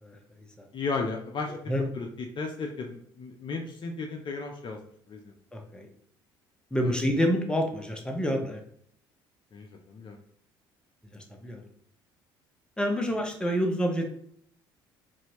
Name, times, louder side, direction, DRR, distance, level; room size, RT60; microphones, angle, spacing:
voice 1, 0.0-0.7 1.5-1.8 5.5-5.9 6.7-8.6 11.0-11.6 12.8-14.1, equal, 5° left, 2 dB, 0.9 m, -28 dB
voice 2, 0.7-2.1 2.4-4.8 5.1-5.4 9.5-10.2, left 4 dB, 40° left, 2 dB, 0.6 m, -35 dB
4.2 x 2.6 x 2.9 m, 0.66 s
hypercardioid pair, 55°, 12 cm